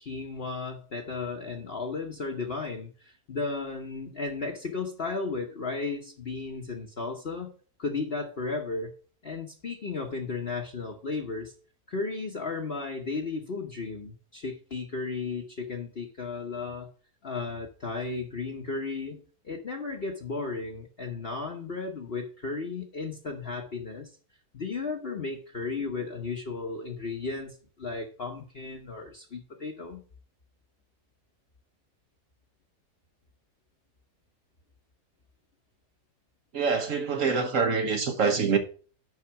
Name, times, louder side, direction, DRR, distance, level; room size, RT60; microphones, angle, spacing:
voice 1, 0.0-7.5 7.8-8.9 9.2-11.5 11.9-16.9 17.2-24.1 24.5-30.0, left 4 dB, 40° left, 1.1 m, -34 dB
voice 2, 36.5-38.6, right 5 dB, 55° right, 1.2 m, -25 dB
10.5 x 4.2 x 5.7 m
omnidirectional pair, 1.7 m